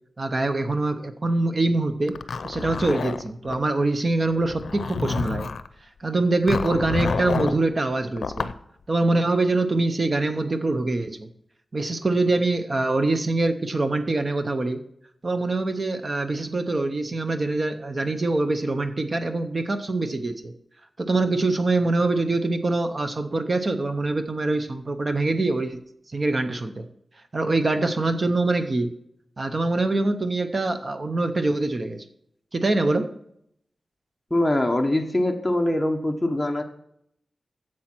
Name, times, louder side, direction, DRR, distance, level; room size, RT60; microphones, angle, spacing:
voice 1, 0.2-2.2 2.4-5.5 6.0-8.5 8.9-11.3 11.7-14.8 15.2-20.5 21.0-25.8 26.1-26.9 27.3-28.9 29.4-32.0 32.5-33.1, right 2 dB, 35° right, 8 dB, 0.6 m, -24 dB
Zipper (clothing), 2.1-3.6 4.4-5.7 6.5-7.6 8.2-8.6, left 5 dB, 90° left, 0.5 m, -29 dB
voice 2, 34.3-36.6, left 1 dB, 5° left, 2 dB, 1.0 m, -23 dB
10.0 x 7.5 x 4.4 m, 0.72 s
wide cardioid pair, 135°, 0 cm